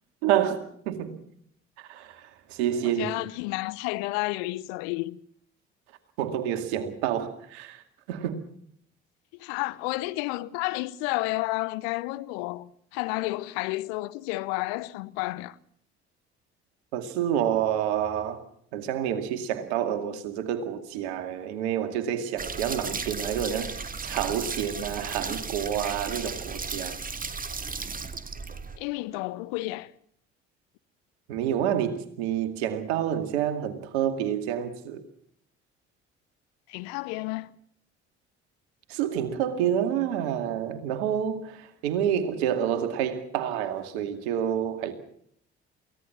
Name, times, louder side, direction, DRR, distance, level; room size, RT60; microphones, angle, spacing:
voice 1, 0.2-1.2 1.8-3.1 6.2-7.8 8.1-8.4 16.9-18.4 18.7-27.0 31.3-35.0 38.9-44.9, right 9 dB, 70° right, 2.3 m, -28 dB
voice 2, 3.0-5.2 9.4-15.6 28.8-29.9 36.7-37.5, left 20 dB, 65° left, 0.9 m, -31 dB
sound 1, 22.4-28.8, right 4 dB, 25° right, 1.9 m, -35 dB
23.5 x 17.5 x 7.3 m
figure-of-eight pair, 50°, 34 cm